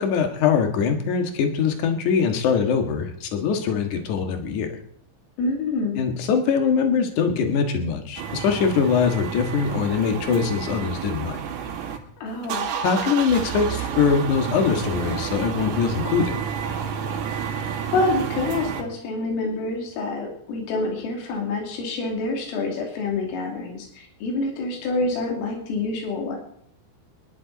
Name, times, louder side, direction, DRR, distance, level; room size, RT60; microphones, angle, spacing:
voice 1, 0.0-4.8 6.0-11.4 12.8-16.5, left 6 dB, 60° left, 4 dB, 2.0 m, -22 dB
voice 2, 5.4-6.0 12.2-12.7 17.4-26.4, left 3 dB, 80° left, 1 dB, 5.3 m, -27 dB
sound 1, 8.2-12.0 12.3-18.8, right 8 dB, 90° right, 5.1 m, -30 dB
26.5 x 11.0 x 4.1 m, 0.64 s
omnidirectional pair, 5.8 m